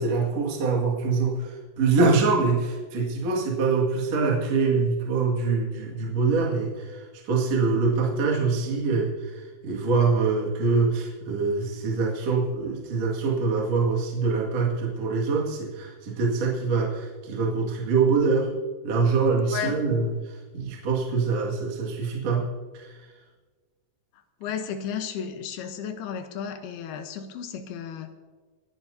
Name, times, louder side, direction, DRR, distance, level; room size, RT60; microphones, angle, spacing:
voice 1, 0.0-18.5 18.8-20.1 20.5-22.5 22.7-22.9, right 4 dB, 50° right, -2 dB, 2.5 m, -24 dB
voice 2, 24.4-28.1, left 8 dB, 75° left, 8 dB, 2.7 m, -33 dB
29.5 x 11.0 x 2.7 m, 1.4 s
omnidirectional pair, 4.8 m